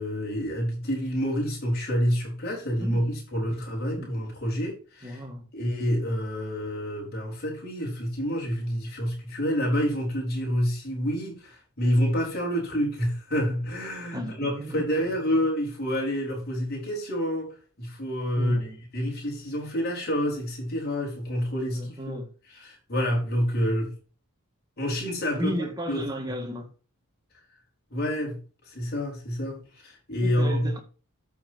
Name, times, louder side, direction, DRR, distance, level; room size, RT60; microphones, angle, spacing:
voice 1, 0.0-5.2 5.5-18.6 18.9-22.2 22.5-23.9 24.8-25.5 25.9-26.0 27.9-28.4 28.6-30.7, equal, 45° left, 4.6 m, -28 dB
voice 2, 2.8-3.1 3.5-3.6 4.0-4.1 5.0-5.4 14.1-14.9 18.4-18.8 21.7-22.3 25.3-26.7 30.2-30.8, equal, 20° right, 1.9 m, -34 dB
13.0 x 5.8 x 2.8 m
head